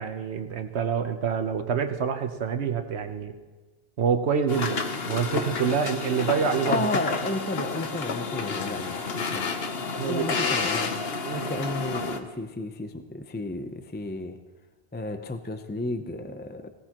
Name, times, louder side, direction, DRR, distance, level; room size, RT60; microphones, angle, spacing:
voice 1, 0.0-3.3 4.0-4.8 5.1-6.9 10.0-10.3 11.2-11.5, right 6 dB, 75° right, 7 dB, 1.2 m, -26 dB
sound 1, 4.5-12.2, left 4 dB, 65° left, 1.2 m, -30 dB
voice 2, 6.6-9.5 10.1-10.9 11.3-14.4 14.9-16.7, left 2 dB, 10° left, 8 dB, 0.5 m, -33 dB
19.0 x 17.5 x 3.0 m, 1.3 s
omnidirectional pair, 1.1 m